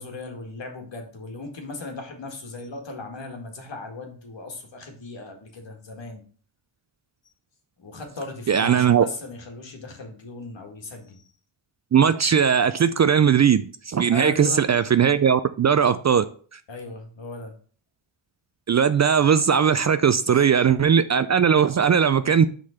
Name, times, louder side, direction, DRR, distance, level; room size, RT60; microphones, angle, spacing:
voice 1, 0.0-6.2 7.8-11.2 14.1-14.7 16.7-17.5 20.3-20.5, left 3 dB, 65° left, 3 dB, 1.9 m, -37 dB
voice 2, 8.5-9.0 11.9-16.2 18.7-22.5, right 7 dB, 40° right, 13 dB, 0.4 m, -19 dB
6.2 x 3.9 x 5.7 m, 0.43 s
cardioid pair, 85°, 48 cm